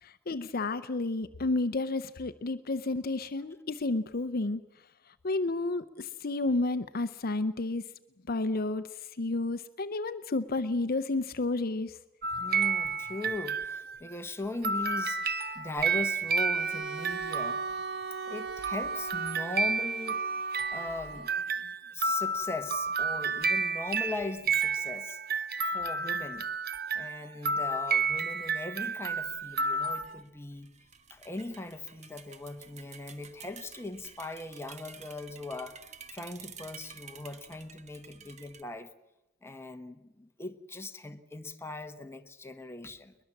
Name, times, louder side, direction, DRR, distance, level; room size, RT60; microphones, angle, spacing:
voice 1, 0.0-4.6 5.2-7.8 8.3-12.0, left 2 dB, 50° left, 0.7 m, -31 dB
sound 1, 12.2-14.1 14.6-30.2, right 4 dB, 50° right, 1.0 m, -31 dB
voice 2, 12.4-15.2 15.5-17.6 18.3-20.2 20.7-21.3 21.9-25.2 25.6-26.5 26.9-30.7 31.1-38.9 39.4-43.2, left 2 dB, 15° left, 1.2 m, -39 dB
Bowed string instrument, 16.5-21.5, right 4 dB, 85° right, 1.2 m, -41 dB
sound 2, 29.1-38.6, right 6 dB, 35° right, 1.4 m, -52 dB
22.0 x 21.0 x 7.3 m
head